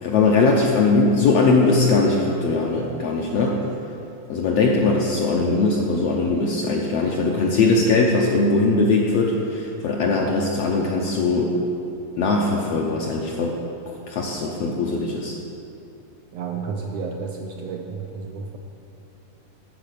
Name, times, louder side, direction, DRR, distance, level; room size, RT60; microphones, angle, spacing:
voice 1, 0.0-3.6 4.3-11.6 12.2-13.6 13.9-15.3, left 3 dB, 70° left, -1 dB, 1.5 m, -20 dB
voice 2, 16.3-18.6, right 5 dB, 80° right, 2 dB, 1.5 m, -31 dB
10.0 x 7.4 x 6.7 m, 2.7 s
omnidirectional pair, 3.6 m